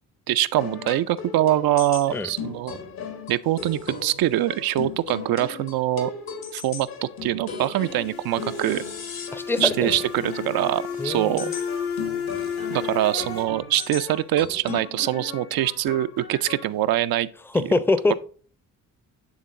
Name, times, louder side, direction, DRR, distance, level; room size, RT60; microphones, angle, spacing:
voice 1, 0.3-2.8 3.3-6.1 6.5-8.8 9.6-11.5 12.7-17.3, right 13 dB, 65° right, 0.5 m, -24 dB
sound 1, 0.5-16.7, left 5 dB, 65° left, 1.5 m, -37 dB
sound 2, 7.8-13.5, left 7 dB, 80° left, 2.0 m, -33 dB
voice 2, 9.3-9.9 11.0-11.5 17.5-18.1, left 2 dB, 5° left, 0.6 m, -23 dB
8.7 x 3.6 x 3.6 m
supercardioid pair, 50°, 39 cm